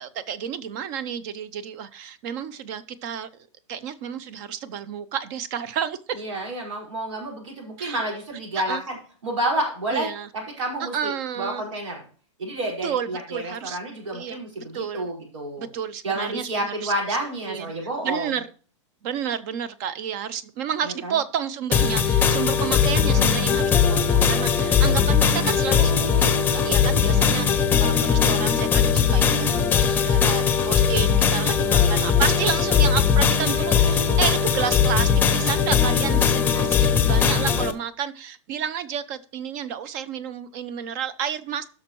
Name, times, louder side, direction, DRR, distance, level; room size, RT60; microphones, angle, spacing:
voice 1, 0.0-3.3 3.7-6.2 7.8-8.0 8.6-8.8 9.9-10.3 10.8-11.6 12.8-13.8 14.1-14.4 14.7-15.1 15.6-16.9 17.5-17.7 18.0-18.5 19.0-41.7, right 8 dB, 35° right, 17 dB, 0.6 m, -31 dB
voice 2, 6.2-9.0 9.2-10.1 10.3-12.0 12.4-15.7 16.0-18.3 20.8-21.2 23.0-23.4 31.6-32.1 36.4-36.7, right 1 dB, 85° right, -1 dB, 5.2 m, -30 dB
sound 1, 21.7-37.7, left 7 dB, 10° left, 0.7 m, -20 dB
16.0 x 6.2 x 3.1 m, 0.42 s
supercardioid pair, 155°, 16 cm